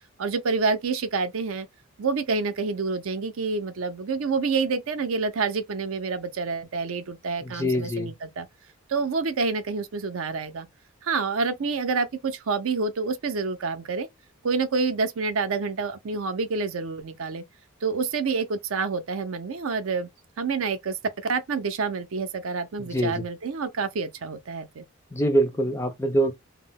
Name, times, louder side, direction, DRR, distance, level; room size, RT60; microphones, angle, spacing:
voice 1, 0.2-1.7 2.0-8.5 8.9-10.7 11.0-14.1 14.4-17.4 17.8-20.1 20.4-24.9, right 4 dB, 65° right, 0.5 m, -28 dB
voice 2, 7.4-8.1 22.9-23.1 25.1-26.3, right 1 dB, 10° left, 0.3 m, -24 dB
2.2 x 2.0 x 3.6 m
head